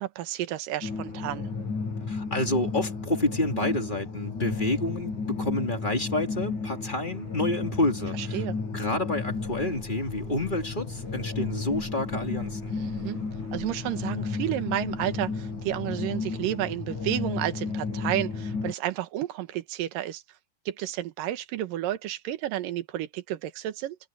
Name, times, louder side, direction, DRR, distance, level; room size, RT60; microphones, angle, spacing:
voice 1, 0.0-1.5 8.2-8.6 12.7-13.2 13.5-20.2 20.7-24.0, right 13 dB, 75° right, 2.9 m, -31 dB
sound 1, 0.8-18.7, left 4 dB, 60° left, 7.1 m, -33 dB
voice 2, 2.1-8.4 8.7-12.7, left 2 dB, 15° left, 3.1 m, -29 dB
sound 2, 9.2-16.0, right 3 dB, 40° right, 3.6 m, -48 dB
omnidirectional pair, 4.0 m